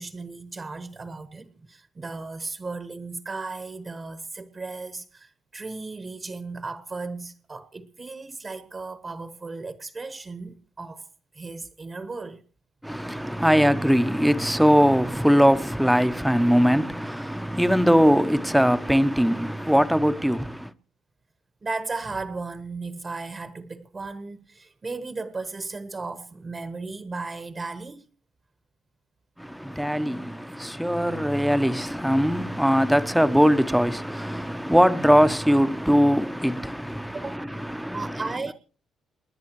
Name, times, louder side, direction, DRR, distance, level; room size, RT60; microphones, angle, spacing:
voice 1, 0.0-11.1 11.3-12.4 21.6-28.0 37.1-37.5 37.9-38.5, right 3 dB, 30° right, 1.2 m, -35 dB
voice 2, 12.8-20.7 29.4-38.2, equal, ahead, 0.9 m, -21 dB
29.0 x 10.5 x 3.1 m
cardioid pair, 90°, 0 cm